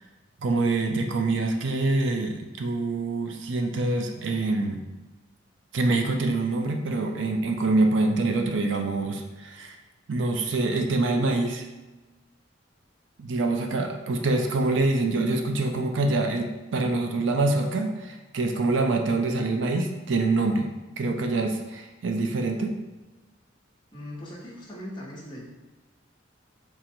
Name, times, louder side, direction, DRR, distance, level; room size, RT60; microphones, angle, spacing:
voice 1, 0.4-4.8 5.7-9.8 10.1-11.6 13.2-20.7 21.0-22.7, right 2 dB, 70° right, 4 dB, 0.4 m, -25 dB
voice 2, 13.5-13.8 14.1-14.2 23.9-25.4, left 1 dB, 25° left, -4 dB, 0.8 m, -40 dB
3.8 x 2.1 x 4.3 m, 1.1 s
head